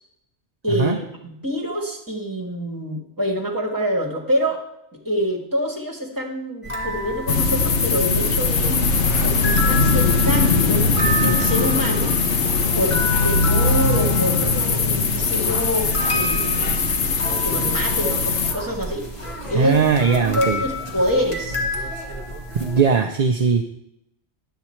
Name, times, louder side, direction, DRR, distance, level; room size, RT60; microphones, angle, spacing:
voice 1, 0.6-4.6 4.9-8.7 9.2-12.2 12.7-16.9 17.4-19.1 19.5-19.8 20.2-21.9, equal, 15° right, 0 dB, 1.8 m, -26 dB
sound 1, 6.6-22.8, left 1 dB, 30° left, 1.4 m, -30 dB
sound 2, 7.3-18.5, left 4 dB, 75° left, 1.2 m, -20 dB
voice 2, 19.5-20.6 22.6-23.6, right 6 dB, 45° right, 4 dB, 0.6 m, -19 dB
9.7 x 7.9 x 4.4 m, 0.82 s
omnidirectional pair, 1.2 m